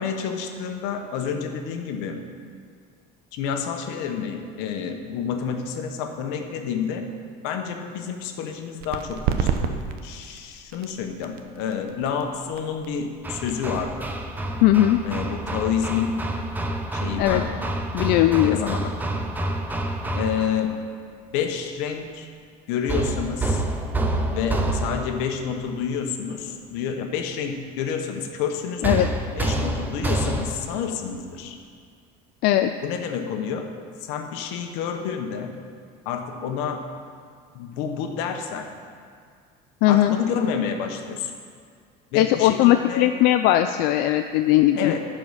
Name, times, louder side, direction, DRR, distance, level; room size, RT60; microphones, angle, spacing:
voice 1, 0.0-2.2 3.3-7.0 7.4-14.1 15.0-16.1 16.9-17.5 18.2-18.9 20.1-20.8 21.3-22.3 22.7-23.6 24.3-29.1 29.4-31.6 32.8-33.7 34.0-35.5 36.0-36.8 37.5-38.7 39.9-41.3 42.1-43.1 44.8-45.0, left 7 dB, 80° left, 5 dB, 1.1 m, -29 dB
sound 1, 8.8-16.1, right 7 dB, 60° right, 0.7 m, -32 dB
Hammer, 13.2-20.7 22.9-25.3 28.8-30.8, right 1 dB, 10° right, 0.6 m, -28 dB
voice 2, 14.6-15.0 17.2-17.4 17.9-18.6 28.8-29.1 32.4-32.7 39.8-40.2 42.1-44.9, left 13 dB, 65° left, 7 dB, 0.4 m, -18 dB
14.0 x 4.9 x 5.6 m, 2.1 s
cardioid pair, 150°, 18 cm